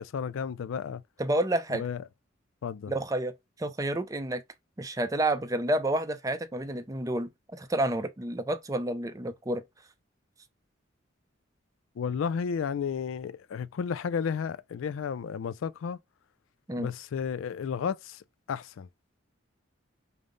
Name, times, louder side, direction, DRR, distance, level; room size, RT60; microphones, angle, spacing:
voice 1, 0.0-1.0 1.7-2.0 2.6-2.9 12.0-16.0 16.8-18.9, left 6 dB, 85° left, 0.3 m, -33 dB
voice 2, 1.2-1.8 2.9-3.3 3.6-4.4 4.8-9.6 16.7-16.9, right 1 dB, 15° right, 0.4 m, -29 dB
5.3 x 2.0 x 3.8 m
head